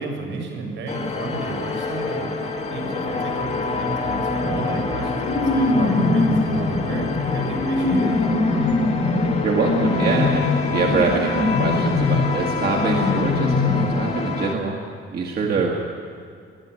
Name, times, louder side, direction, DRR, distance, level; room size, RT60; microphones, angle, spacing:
voice 1, 0.0-8.2 15.4-15.6, right 3 dB, 80° right, 2 dB, 6.9 m, -32 dB
sound 1, 0.9-14.5, left 4 dB, 35° left, 2.2 m, -27 dB
sound 2, 4.4-13.8, left 3 dB, 65° left, 6.0 m, -22 dB
voice 2, 9.4-10.4 10.7-14.8 15.1-15.7, right 5 dB, 50° right, -1 dB, 1.9 m, -24 dB
21.5 x 13.5 x 9.8 m, 2.3 s
cardioid pair, 155°, 20 cm